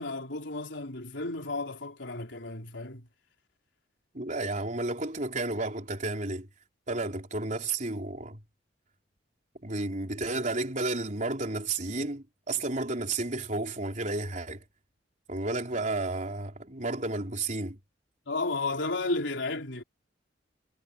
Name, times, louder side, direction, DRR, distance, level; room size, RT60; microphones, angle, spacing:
voice 1, 0.0-3.1 18.3-19.8, left 3 dB, 80° left, 3.8 m, -33 dB
voice 2, 4.1-6.5 6.9-8.4 9.6-14.6 15.3-17.8, right 2 dB, 45° right, 4.1 m, -32 dB
head